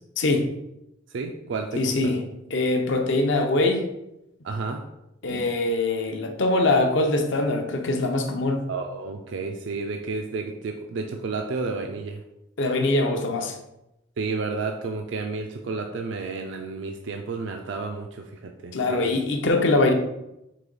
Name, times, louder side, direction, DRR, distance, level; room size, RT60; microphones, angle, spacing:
voice 1, 0.2-0.5 1.7-2.2 2.5-3.9 5.2-8.6 12.6-13.6 18.7-19.9, left 2 dB, 65° left, 4 dB, 0.6 m, -23 dB
voice 2, 1.1-2.1 4.4-4.9 8.7-12.2 14.2-19.1, right 4 dB, 65° right, 4 dB, 0.4 m, -31 dB
4.9 x 2.8 x 3.8 m, 0.89 s
head